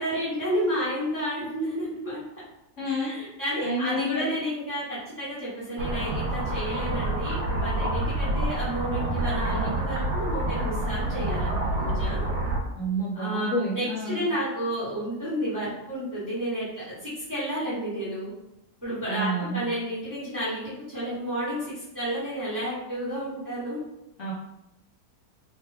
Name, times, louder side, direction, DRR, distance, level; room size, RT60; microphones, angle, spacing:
voice 1, 0.0-2.2 2.8-12.2 13.1-18.3 18.8-23.8, equal, 15° right, -10 dB, 0.8 m, -31 dB
voice 2, 2.8-3.1 3.6-4.3 12.8-14.2 19.1-19.6 24.2-24.3, right 1 dB, 60° left, -6 dB, 0.9 m, -29 dB
sound 1, 5.8-12.6, right 1 dB, 85° right, 1.2 m, -27 dB
2.9 x 2.2 x 3.3 m, 0.87 s
omnidirectional pair, 1.7 m